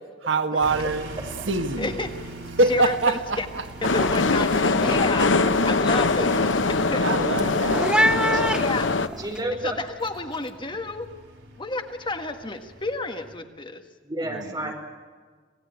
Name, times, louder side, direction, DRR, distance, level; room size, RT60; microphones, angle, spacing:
voice 1, 0.3-1.1 1.5-1.9 2.6-3.6 7.0-8.7 14.3-14.7, right 3 dB, 70° right, 7 dB, 1.6 m, -25 dB
sound 1, 0.6-13.4, right 2 dB, 85° right, 5.3 m, -42 dB
voice 2, 1.8-2.3 2.7-3.5 3.8-5.3 5.6-7.0 8.5-8.9 9.6-11.1 11.6-13.8, left 3 dB, 25° left, 6 dB, 1.6 m, -31 dB
sound 2, 2.1-2.3 2.6-3.0 3.4-9.4, equal, 5° right, 0.9 m, -29 dB
sound 3, 3.8-9.1, left 3 dB, 70° left, 1.0 m, -22 dB
voice 3, 9.2-9.8 14.0-14.7, right 1 dB, 20° right, 3 dB, 4.7 m, -30 dB
26.5 x 18.0 x 9.4 m, 1.5 s
head